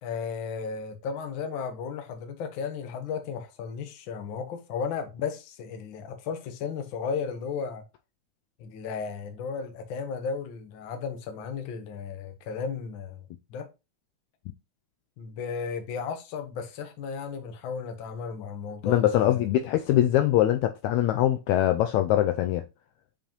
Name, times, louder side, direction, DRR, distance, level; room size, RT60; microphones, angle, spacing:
voice 1, 0.0-7.8 8.6-13.2 13.5-13.7 15.2-19.5, left 6 dB, 55° left, 1.5 m, -34 dB
voice 2, 18.8-22.6, left 13 dB, 80° left, 1.7 m, -23 dB
7.3 x 5.1 x 3.0 m
omnidirectional pair, 3.5 m